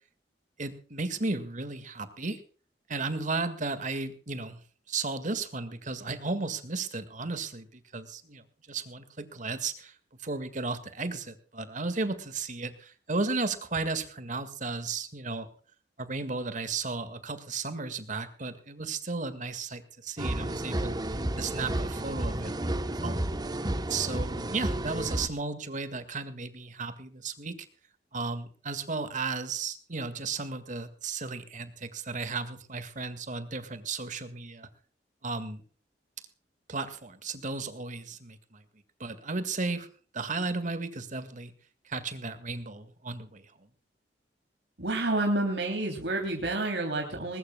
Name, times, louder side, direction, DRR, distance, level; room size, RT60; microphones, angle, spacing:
voice 1, 0.6-2.4 2.9-4.6 4.9-9.9 10.2-15.5 16.0-23.3 23.8-27.6 28.1-34.7 35.2-35.6 36.7-38.6 39.0-39.9 40.1-41.5 41.9-43.7, right 3 dB, 45° right, 11 dB, 1.9 m, -34 dB
sound 1, 20.2-25.3, right 1 dB, 25° right, 1.0 m, -31 dB
voice 2, 44.8-47.4, right 2 dB, 70° right, 1 dB, 3.1 m, -29 dB
20.5 x 20.0 x 2.3 m, 0.41 s
head